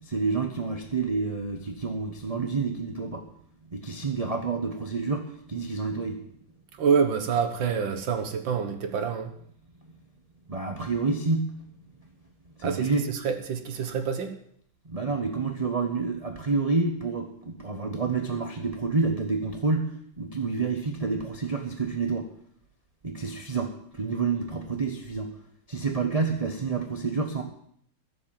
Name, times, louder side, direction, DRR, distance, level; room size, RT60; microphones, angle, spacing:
voice 1, 0.0-3.3 3.7-6.2 10.5-11.6 12.6-13.0 14.8-22.3 23.0-25.3 25.7-27.4, right 4 dB, 30° right, 4 dB, 0.7 m, -28 dB
voice 2, 6.8-9.3 12.6-14.3, right 6 dB, 65° right, 7 dB, 1.9 m, -27 dB
13.0 x 7.3 x 8.9 m, 0.66 s
omnidirectional pair, 2.4 m